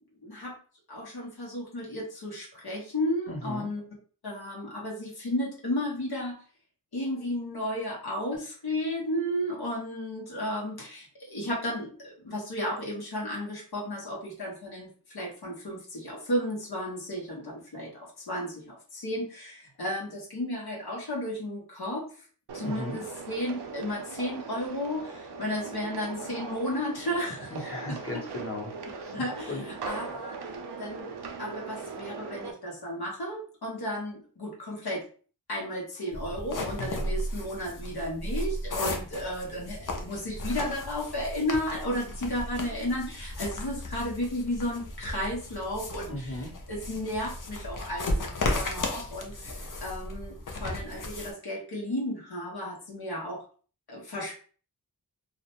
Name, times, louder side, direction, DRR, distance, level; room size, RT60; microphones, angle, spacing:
voice 1, 0.2-0.5 0.9-3.8 4.2-6.4 6.9-22.0 22.5-27.5 27.9-28.0 29.1-30.4 30.8-31.1 31.4-35.0 35.5-46.4 46.7-53.4 53.9-54.4, left 1 dB, 75° left, -3 dB, 0.9 m, -33 dB
voice 2, 3.3-3.7 22.6-23.0 27.5-29.1 29.5-29.6 46.1-46.5, left 1 dB, 35° left, -1 dB, 1.0 m, -36 dB
sound 1, 22.5-32.5, right 4 dB, 85° right, 0.5 m, -40 dB
sound 2, 36.1-51.3, left 1 dB, 55° left, 0.6 m, -35 dB
2.4 x 2.1 x 2.8 m, 0.41 s
wide cardioid pair, 65°, 39 cm